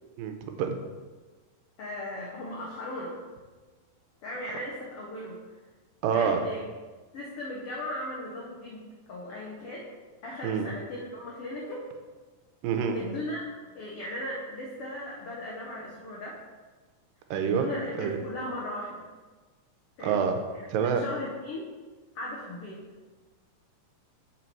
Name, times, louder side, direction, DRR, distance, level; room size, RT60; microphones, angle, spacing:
voice 1, 0.2-0.8 6.0-6.4 10.4-10.7 12.6-13.0 17.3-17.7 18.0-18.2 20.0-20.4 20.7-21.0, right 7 dB, 90° right, 5 dB, 2.3 m, -27 dB
voice 2, 1.8-3.2 4.2-5.4 6.1-6.6 7.1-9.9 10.2-11.9 12.9-13.5 13.7-16.4 17.4-19.0 20.0-20.2 20.5-21.7 22.1-22.9, left 1 dB, 85° left, -3 dB, 1.3 m, -37 dB
7.6 x 4.0 x 4.5 m, 1.4 s
omnidirectional pair, 3.9 m